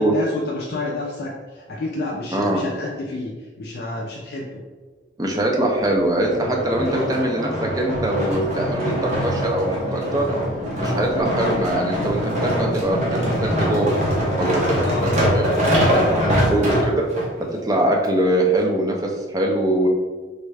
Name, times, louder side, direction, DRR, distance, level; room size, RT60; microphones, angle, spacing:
voice 1, 0.0-4.6 6.9-7.2 14.8-15.1, left 2 dB, 55° left, -3 dB, 0.4 m, -29 dB
voice 2, 2.3-2.7 5.2-10.4 10.8-14.0 14.4-14.6 15.0-17.0 17.6-19.9, right 1 dB, 20° right, 0 dB, 0.4 m, -22 dB
sound 1, 6.3-17.3 17.9-18.0, equal, 40° right, 0.8 m, -23 dB
3.5 x 2.1 x 3.3 m, 1.3 s
head